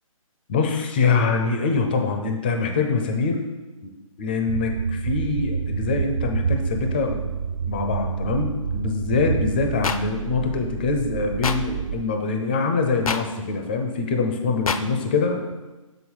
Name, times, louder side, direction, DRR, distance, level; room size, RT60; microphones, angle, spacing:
voice 1, 0.5-3.4 4.2-7.2 7.7-15.4, left 4 dB, 15° left, 4 dB, 0.4 m, -24 dB
sound 1, 4.5-12.0, right 7 dB, 55° right, 0.4 m, -28 dB
sound 2, 9.8-10.0 11.4-11.6 13.0-13.2 14.6-14.8, left 6 dB, 85° left, 0.5 m, -24 dB
7.3 x 3.9 x 4.6 m, 1.1 s
hypercardioid pair, 160°, 18 cm